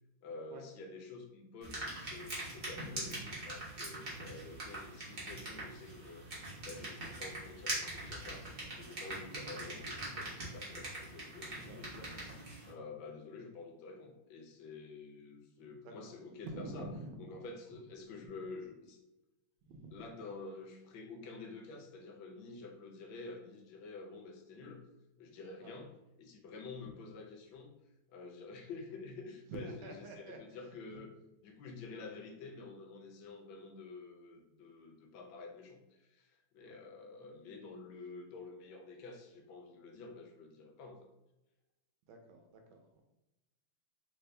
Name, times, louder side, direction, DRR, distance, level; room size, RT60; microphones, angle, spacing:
voice 1, 0.2-6.3 6.6-8.5 8.7-12.1 12.7-16.9 17.2-19.0 19.9-24.8 25.2-25.9 26.2-27.7 28.1-31.1 31.4-41.1, left 3 dB, 75° left, 2 dB, 1.4 m, -49 dB
sound 1, 1.6-12.7, right 1 dB, 35° right, 1.1 m, -43 dB
voice 2, 2.7-3.4 11.6-11.8 15.8-16.1 16.4-17.4 19.6-20.1 25.6-25.8 26.8-26.9 29.5-30.6 30.9-31.0 36.6-36.8 42.1-43.0, right 2 dB, 80° right, 3 dB, 1.4 m, -47 dB
3.5 x 2.6 x 3.2 m, 0.96 s
omnidirectional pair, 2.2 m